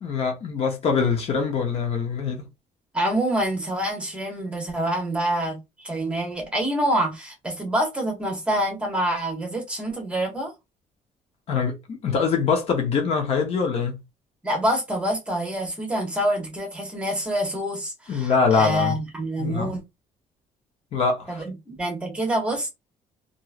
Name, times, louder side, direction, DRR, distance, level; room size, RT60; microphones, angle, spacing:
voice 1, 0.0-2.5 11.5-11.7 12.0-13.9 18.1-19.0 19.4-19.8 20.9-21.4, left 5 dB, 50° left, 0.8 m, -23 dB
voice 2, 2.9-10.5 14.4-19.8 21.3-22.7, right 1 dB, 10° right, 1.2 m, -26 dB
2.9 x 2.6 x 2.4 m
cardioid pair, 140°, 14 cm